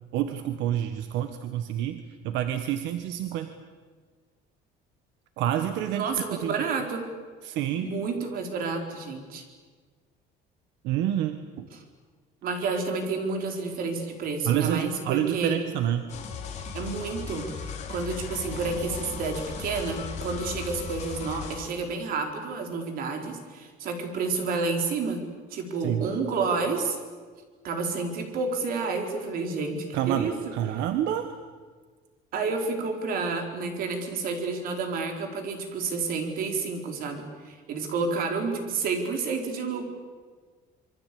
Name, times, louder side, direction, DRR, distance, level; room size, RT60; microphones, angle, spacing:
voice 1, 0.1-3.5 5.4-6.0 6.4-6.5 7.4-7.9 10.8-11.7 14.4-16.0 25.8-26.1 29.9-31.3, right 11 dB, 80° right, 8 dB, 1.6 m, -28 dB
voice 2, 5.9-7.0 7.8-9.4 11.7-11.8 12.4-15.7 16.7-25.2 25.5-27.0 27.6-30.8 32.3-39.9, right 4 dB, 55° right, 4 dB, 4.5 m, -30 dB
sound 1, 16.1-21.6, left 6 dB, 40° left, 4.2 m, -37 dB
26.5 x 23.5 x 8.7 m, 1.5 s
cardioid pair, 175°, 18 cm